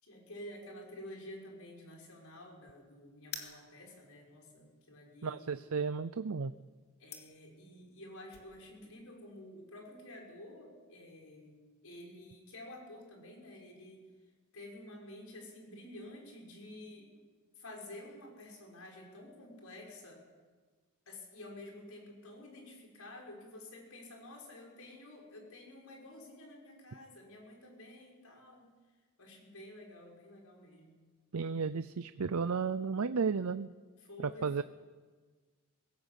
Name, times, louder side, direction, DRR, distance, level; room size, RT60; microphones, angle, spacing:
voice 1, 0.0-5.5 7.0-11.6 11.8-14.0 14.5-17.1 17.6-20.2 21.1-28.7 29.2-31.0 34.0-34.6, left 1 dB, 85° left, 0 dB, 5.7 m, -50 dB
sound 1, 3.2-8.5, left 6 dB, 50° left, 2.8 m, -50 dB
voice 2, 5.2-6.5 31.3-33.7 34.4-34.6, right 5 dB, 90° right, 12 dB, 0.6 m, -33 dB
22.0 x 17.0 x 8.3 m, 1.4 s
head